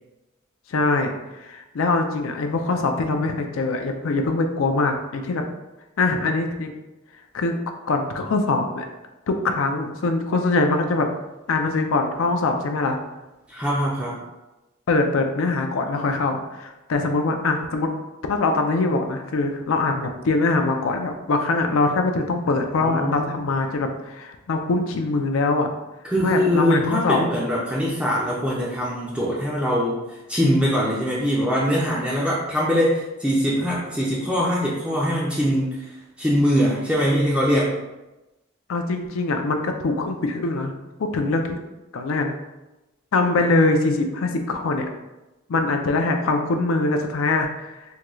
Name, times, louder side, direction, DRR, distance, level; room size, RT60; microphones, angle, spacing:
voice 1, 0.7-5.4 6.0-6.7 7.3-7.6 7.9-8.9 9.3-11.1 11.5-13.0 14.9-17.9 18.3-25.7 26.2-27.2 38.7-40.7 41.0-41.6 41.9-42.3 43.1-44.9 45.5-47.8, left 3 dB, 75° left, 5 dB, 0.4 m, -23 dB
voice 2, 13.5-14.2 22.8-23.4 26.0-37.8, equal, 5° right, -6 dB, 0.4 m, -22 dB
3.6 x 2.2 x 3.0 m, 1.0 s
head